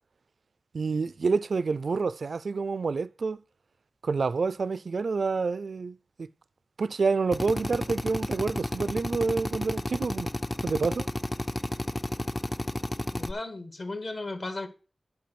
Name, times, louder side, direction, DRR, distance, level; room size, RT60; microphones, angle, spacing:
voice 1, 0.7-3.4 4.0-6.3 6.8-10.3 10.6-11.1, right 4 dB, 70° right, 0.4 m, -28 dB
Drill, 7.3-13.3, left 1 dB, 20° left, 0.5 m, -32 dB
voice 2, 13.1-14.7, left 2 dB, 50° left, 1.9 m, -35 dB
10.5 x 4.6 x 7.7 m
wide cardioid pair, 95°, 0 cm